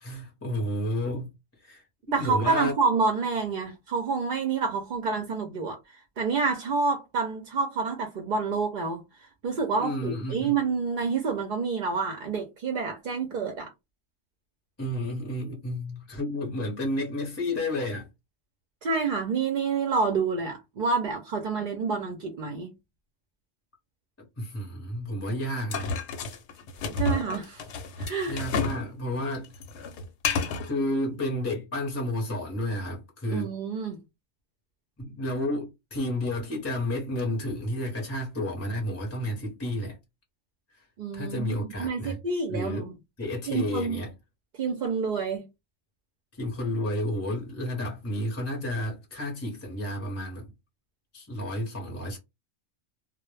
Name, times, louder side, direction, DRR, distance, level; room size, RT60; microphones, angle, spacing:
voice 1, 0.0-1.3 1.6-2.7 9.8-10.6 14.8-18.1 24.2-25.9 28.3-29.5 30.7-33.5 35.0-40.0 40.8-40.9 41.1-42.2 42.5-44.1 46.3-50.5 51.1-52.2, left 1 dB, 15° left, 0.5 m, -31 dB
voice 2, 2.1-9.0 9.4-13.7 18.8-22.7 27.0-27.6 28.0-28.4 33.3-34.0 41.0-42.9 43.5-44.0 44.5-45.5, right 4 dB, 55° right, 0.5 m, -28 dB
sound 1, 25.7-28.8 29.1-30.7, left 4 dB, 70° left, 0.8 m, -30 dB
2.1 x 2.0 x 3.1 m
omnidirectional pair, 1.3 m